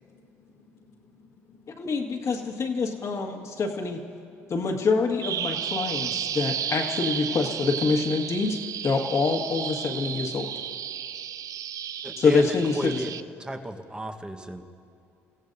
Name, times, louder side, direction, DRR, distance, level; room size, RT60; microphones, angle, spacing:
voice 1, 0.0-4.9, left 4 dB, 85° left, -7 dB, 1.8 m, -58 dB
voice 2, 1.8-4.0 4.5-8.6 8.8-10.5 12.2-13.0, left 4 dB, 50° left, 3 dB, 1.8 m, -25 dB
Bird vocalization bird call bird song, 5.2-13.2, right 9 dB, 55° right, 0.4 m, -33 dB
voice 3, 12.0-13.1 13.4-14.6, right 1 dB, 15° right, 5 dB, 1.3 m, -34 dB
29.5 x 16.0 x 2.7 m, 2.7 s
hypercardioid pair, 65°, 7 cm